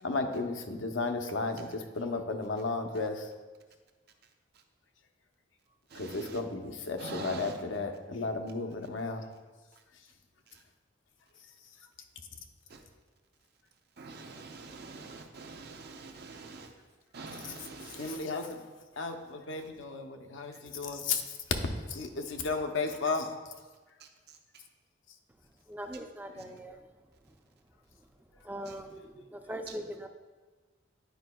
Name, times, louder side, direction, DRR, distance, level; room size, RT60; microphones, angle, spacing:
voice 1, 0.0-3.3 6.0-9.2 17.4-17.5 18.0-18.6 19.0-21.2 21.9-23.3, left 3 dB, 85° left, 0.6 m, -34 dB
voice 2, 5.9-6.4 7.0-7.6 12.7-12.8 14.0-16.7 17.1-18.2 24.0-24.1 28.7-28.8, right 3 dB, 55° right, 0.7 m, -45 dB
voice 3, 25.7-26.8 28.4-30.1, equal, 10° right, 0.4 m, -41 dB
10.5 x 4.8 x 2.2 m
head